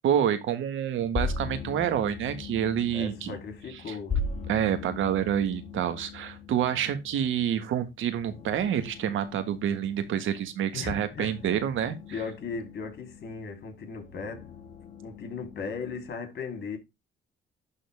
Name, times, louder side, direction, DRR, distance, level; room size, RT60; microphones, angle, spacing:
voice 1, 0.0-3.3 3.9-4.0 4.5-12.0, right 9 dB, 80° right, 1.5 m, -28 dB
sound 1, 1.0-16.1, left 4 dB, 35° left, 1.6 m, -39 dB
voice 2, 2.9-4.2 10.7-11.7 12.1-14.5 15.0-16.8, left 5 dB, 55° left, 3.4 m, -37 dB
11.5 x 3.8 x 3.5 m
cardioid pair, 90°, 20 cm